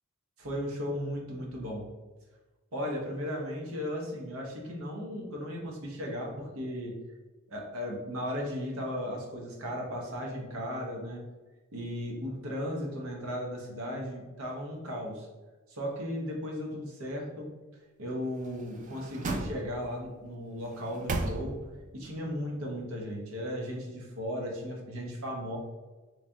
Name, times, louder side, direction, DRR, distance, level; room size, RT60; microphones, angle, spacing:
voice 1, 0.4-1.9 2.7-6.9 7.5-11.2 11.7-15.3 15.7-17.5 18.0-21.6 21.9-25.6, equal, 75° right, -1 dB, 0.8 m, -36 dB
sound 1, 18.4-20.1 20.6-21.9 22.3-22.4, right 2 dB, 35° right, 0.3 m, -36 dB
3.2 x 2.7 x 3.4 m, 1.2 s
head